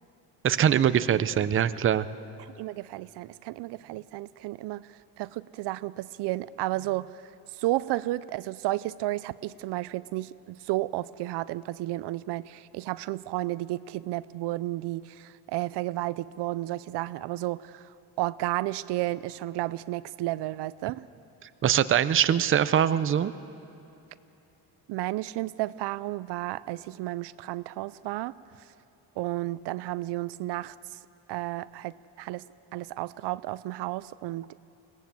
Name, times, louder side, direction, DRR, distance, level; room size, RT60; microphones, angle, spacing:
voice 1, 0.4-2.1 21.6-23.3, right 9 dB, 30° right, 14 dB, 0.6 m, -23 dB
voice 2, 2.6-4.9 5.2-7.2 7.6-17.8 18.2-21.0 24.9-28.3 29.2-30.7 31.3-32.4 32.7-34.5, right 17 dB, 75° right, 17 dB, 0.5 m, -32 dB
22.0 x 18.0 x 7.6 m, 2.9 s
cardioid pair, 130°, 41 cm